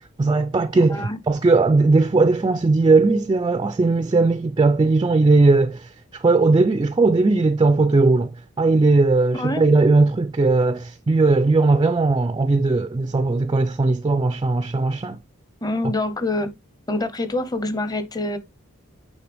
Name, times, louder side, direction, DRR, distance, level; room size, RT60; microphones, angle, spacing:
voice 1, 0.2-8.3 8.6-15.2, right 3 dB, 20° right, 0.3 m, -18 dB
voice 2, 0.7-1.2 9.3-9.7 15.6-16.5 16.9-18.4, left 2 dB, 20° left, 0.8 m, -26 dB
9.3 x 3.2 x 3.4 m
head